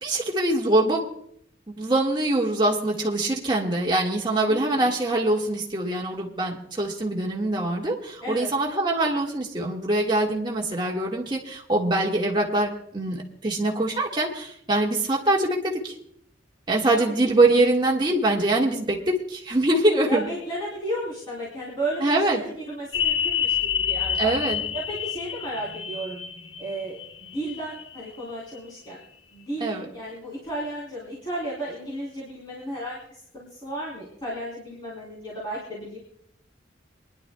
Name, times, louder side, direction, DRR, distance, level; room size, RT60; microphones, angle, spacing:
voice 1, 0.0-1.1 1.8-15.9 16.7-20.3 22.0-22.4 24.2-24.6 29.6-29.9, right 2 dB, 25° right, -2 dB, 1.7 m, -23 dB
voice 2, 4.5-4.9 8.2-8.5 16.9-17.4 20.0-24.3 24.7-26.2 26.6-29.0 29.3-36.0, right 1 dB, 25° left, -6 dB, 3.5 m, -34 dB
sound 1, 22.9-28.2 28.6-28.7, left 8 dB, 75° left, 0.7 m, -28 dB
27.5 x 11.0 x 2.2 m, 0.69 s
head